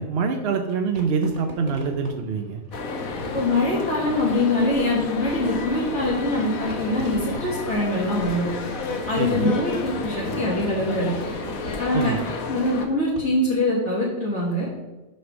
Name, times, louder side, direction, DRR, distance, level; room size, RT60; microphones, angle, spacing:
voice 1, 0.0-2.6 9.2-9.5 11.9-12.2, right 5 dB, 55° right, 4 dB, 0.8 m, -25 dB
Fireworks, 0.9-13.7, right 1 dB, 30° right, 1.4 m, -41 dB
sound 1, 2.7-12.9, left 3 dB, 75° left, 1.4 m, -31 dB
voice 2, 3.3-8.5 9.1-11.1 11.8-12.1 12.5-14.7, left 2 dB, 55° left, -6 dB, 2.0 m, -23 dB
6.3 x 5.6 x 6.1 m, 1.1 s
omnidirectional pair, 1.5 m